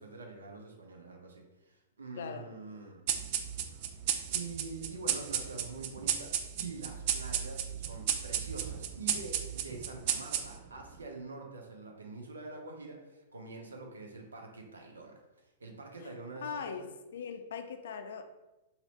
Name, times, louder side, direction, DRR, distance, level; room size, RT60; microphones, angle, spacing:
voice 1, 0.0-3.0 4.3-15.2 15.6-16.9, right 3 dB, 80° right, 2 dB, 0.6 m, -45 dB
voice 2, 2.2-2.5 16.0-16.1 16.4-16.9 17.1-18.2, left 6 dB, 65° left, 8 dB, 0.3 m, -40 dB
sound 1, 3.1-10.8, right 9 dB, 50° right, 0.3 m, -34 dB
2.7 x 2.6 x 3.0 m, 1.0 s
hypercardioid pair, 110°, 0 cm